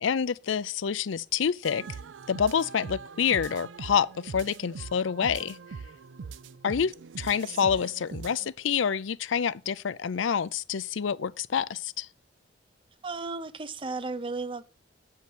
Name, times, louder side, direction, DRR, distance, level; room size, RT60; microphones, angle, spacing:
voice 1, 0.0-1.8 2.3-5.6 6.6-12.1, left 7 dB, 80° left, 0.5 m, -27 dB
sound 1, 1.6-8.5, right 5 dB, 75° right, 0.5 m, -42 dB
voice 2, 13.0-14.7, right 3 dB, 25° right, 0.6 m, -34 dB
7.9 x 5.7 x 6.1 m
head